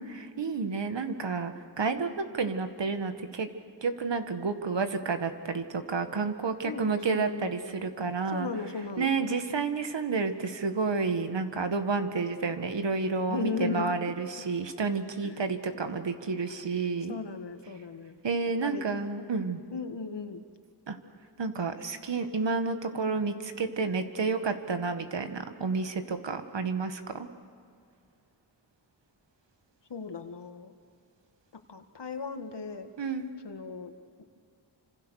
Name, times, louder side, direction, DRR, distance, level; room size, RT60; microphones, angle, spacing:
voice 1, 0.0-3.5 3.8-8.5 9.0-17.2 18.2-19.6 20.9-21.0 21.4-27.3 33.0-33.3, right 4 dB, 75° right, 8 dB, 1.9 m, -30 dB
voice 2, 6.6-7.5 8.3-9.1 13.3-13.9 15.2-15.4 17.1-18.2 18.6-18.9 19.7-20.4 29.9-30.7 31.7-32.9 33.4-33.9, left 4 dB, 65° left, 7 dB, 2.1 m, -36 dB
28.5 x 26.5 x 6.6 m, 2.3 s
cardioid pair, 55°, 44 cm